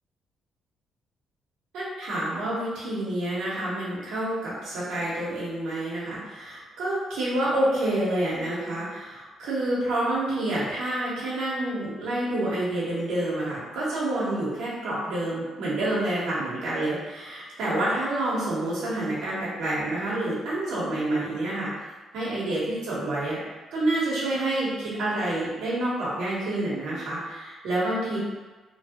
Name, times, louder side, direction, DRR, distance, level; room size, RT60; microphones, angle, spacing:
voice 1, 1.7-21.7 22.1-23.4 23.7-28.2, right 1 dB, 85° right, -8 dB, 1.0 m, -28 dB
3.0 x 2.3 x 2.8 m, 1.2 s
cardioid pair, 90°, 0 cm